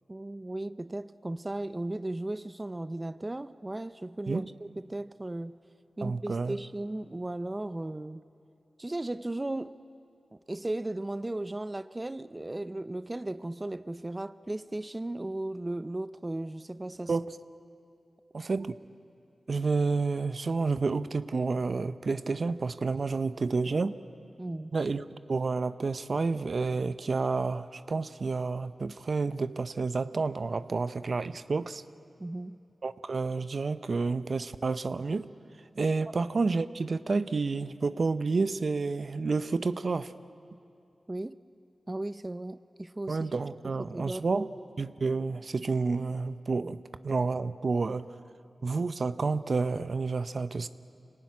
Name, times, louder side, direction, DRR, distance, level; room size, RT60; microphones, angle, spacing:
voice 1, 0.1-5.6 6.0-8.2 8.8-9.8 10.3-17.1 18.6-18.7 24.4-24.7 32.2-32.6 41.1-41.4 41.9-43.3 43.9-44.5, right 1 dB, 25° right, 0.6 m, -36 dB
voice 2, 6.0-6.6 17.1-17.3 18.3-18.7 19.5-24.0 24.7-31.8 32.8-35.3 35.8-40.1 43.1-44.5 44.8-48.1 48.6-50.7, right 4 dB, 60° right, 0.7 m, -30 dB
26.0 x 18.5 x 9.6 m
cardioid pair, 50°, 0 cm